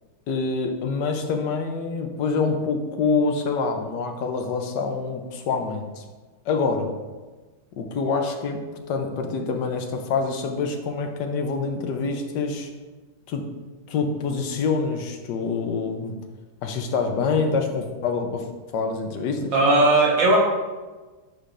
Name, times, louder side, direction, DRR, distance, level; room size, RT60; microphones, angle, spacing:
voice 1, 0.3-6.0 6.5-6.9 7.8-12.7 13.3-13.5 13.9-16.2 16.6-18.5 18.7-19.5, left 4 dB, 70° left, 4 dB, 1.3 m, -26 dB
voice 2, 19.5-20.4, right 2 dB, 75° right, -3 dB, 2.1 m, -17 dB
11.0 x 4.9 x 2.5 m, 1.3 s
omnidirectional pair, 2.1 m